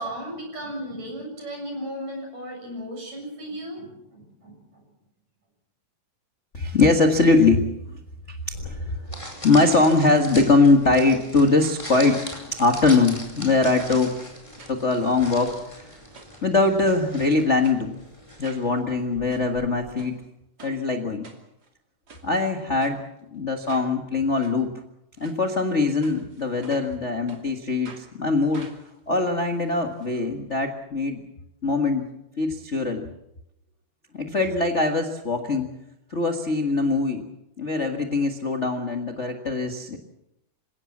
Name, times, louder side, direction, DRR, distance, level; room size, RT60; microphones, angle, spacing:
voice 1, 0.0-4.8, equal, 55° right, 1 dB, 8.9 m, -35 dB
voice 2, 6.5-7.7 8.3-9.0 9.4-14.2 14.7-15.8 16.4-17.9 18.4-20.2 20.6-21.3 22.2-23.0 23.3-24.7 25.2-28.7 29.1-31.2 31.6-32.1 32.4-33.1 34.1-35.7 36.1-37.3 37.6-40.0, left 3 dB, 30° left, 4 dB, 1.3 m, -22 dB
sound 1, 8.5-19.9, equal, 10° left, 4.7 m, -40 dB
sound 2, 13.8-13.9 14.6-15.0 15.3-16.4 16.9-17.2 17.6-17.8 18.4-18.7 19.1-19.4 20.0-20.1 20.6-20.8 21.2-21.7 22.1-22.3 22.8-23.0 23.7-23.9 24.4-24.5 25.2-25.4 26.0-27.0 27.3-27.4 27.8-28.1 28.5-30.1 30.4-30.5 30.7-30.8, right 3 dB, 30° right, 2.9 m, -47 dB
27.5 x 17.0 x 7.4 m, 0.84 s
omnidirectional pair, 3.7 m